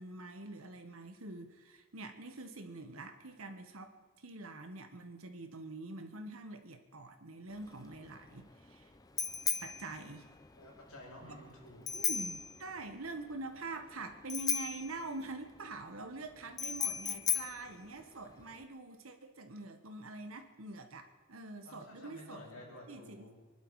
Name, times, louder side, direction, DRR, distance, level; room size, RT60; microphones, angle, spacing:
voice 1, 0.0-8.9 9.6-10.3 11.3-11.4 11.9-22.4 22.9-23.3, right 2 dB, 70° right, 7 dB, 1.5 m, -45 dB
Bicycle bell, 7.5-18.6, left 7 dB, 15° left, 0.6 m, -38 dB
voice 2, 10.6-12.0 21.6-23.3, left 1 dB, 75° left, -2 dB, 5.3 m, -52 dB
24.5 x 11.5 x 4.9 m, 1.3 s
head